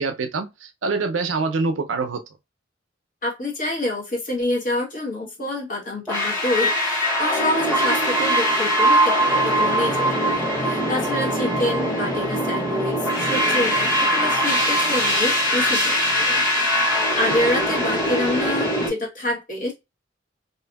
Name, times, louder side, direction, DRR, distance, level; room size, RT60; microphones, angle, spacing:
voice 1, 0.0-2.2, right 4 dB, 70° right, 0.5 m, -25 dB
voice 2, 3.2-16.4 16.7-16.8 17.2-19.7, left 1 dB, 45° left, 1.1 m, -27 dB
sound 1, 6.1-18.9, equal, 15° left, 1.5 m, -21 dB
2.6 x 2.6 x 2.2 m
head